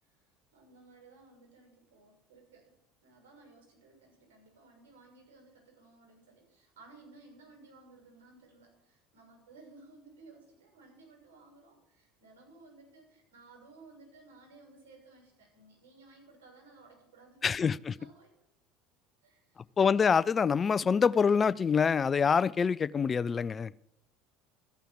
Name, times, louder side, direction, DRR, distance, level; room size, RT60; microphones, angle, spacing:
voice 1, 0.0-2.7 3.0-17.6 17.9-18.3 19.2-19.6, right 3 dB, 75° right, 6.3 m, -57 dB
voice 2, 17.4-17.9 19.8-23.7, left 6 dB, 30° left, 0.4 m, -26 dB
14.0 x 5.8 x 8.6 m
hypercardioid pair, 75°, 0 cm